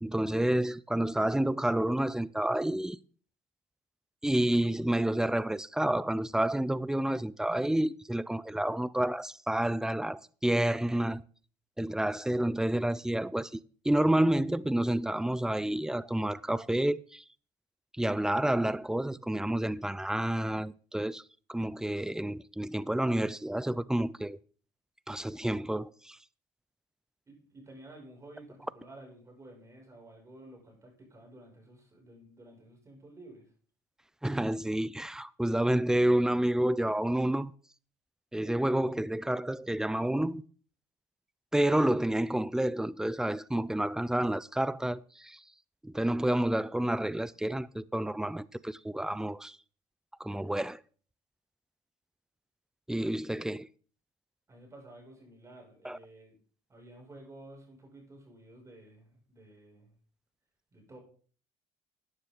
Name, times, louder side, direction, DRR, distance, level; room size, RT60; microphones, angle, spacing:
voice 1, 0.0-3.0 4.2-11.2 11.8-13.6 13.8-17.2 18.0-21.2 21.5-24.4 25.1-26.2 34.2-37.5 38.3-40.4 41.5-45.4 45.8-49.6 50.2-50.8 52.9-53.7 55.8-56.0, right 1 dB, 5° right, 0.4 m, -29 dB
voice 2, 27.3-33.5 54.5-56.4 56.7-59.9 60.7-61.0, right 1 dB, 25° right, 5.8 m, -52 dB
14.0 x 9.7 x 3.7 m
supercardioid pair, 90°, 12 cm